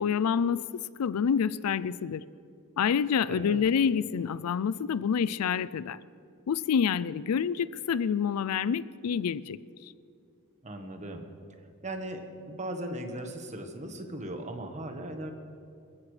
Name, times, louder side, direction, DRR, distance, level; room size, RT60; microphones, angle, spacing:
voice 1, 0.0-2.2 2.8-6.0 6.5-9.6, left 7 dB, 80° left, 19 dB, 0.4 m, -27 dB
voice 2, 3.3-3.6 10.6-11.3 11.8-15.3, right 1 dB, 35° right, 5 dB, 1.3 m, -38 dB
25.0 x 15.0 x 3.3 m, 2.5 s
head